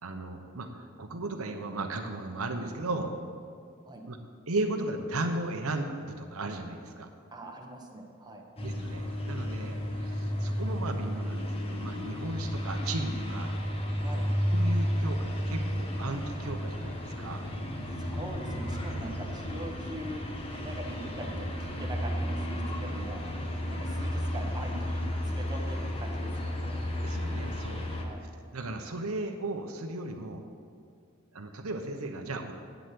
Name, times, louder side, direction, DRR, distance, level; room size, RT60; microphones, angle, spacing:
voice 1, 0.0-3.1 4.1-4.2 4.5-7.1 8.6-13.6 14.5-17.5 22.9-23.1 27.0-27.9 28.5-30.4 31.3-32.5, right 2 dB, 90° right, 5 dB, 1.0 m, -36 dB
voice 2, 7.3-8.5 14.0-14.3 18.0-20.3 20.6-23.3 23.7-26.8 28.0-28.2, right 1 dB, 20° right, 1 dB, 1.1 m, -42 dB
sound 1, 8.6-28.0, equal, 25° left, 1.1 m, -32 dB
8.2 x 7.8 x 8.3 m, 2.2 s
head